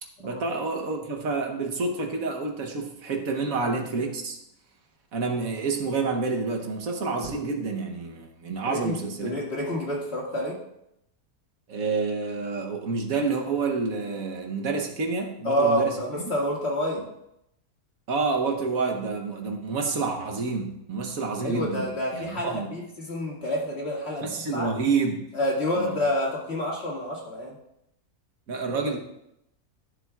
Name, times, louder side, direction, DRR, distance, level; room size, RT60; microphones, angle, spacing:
voice 1, 0.2-4.4 5.1-9.4 11.7-16.3 18.1-21.9 22.1-22.7 24.2-25.2 25.7-26.0 28.5-29.0, right 4 dB, 70° right, 3 dB, 1.4 m, -28 dB
voice 2, 8.7-10.6 15.4-17.0 21.4-24.7 25.3-27.6, equal, 45° left, -3 dB, 2.3 m, -28 dB
13.0 x 7.3 x 2.4 m, 0.81 s
omnidirectional pair, 1.6 m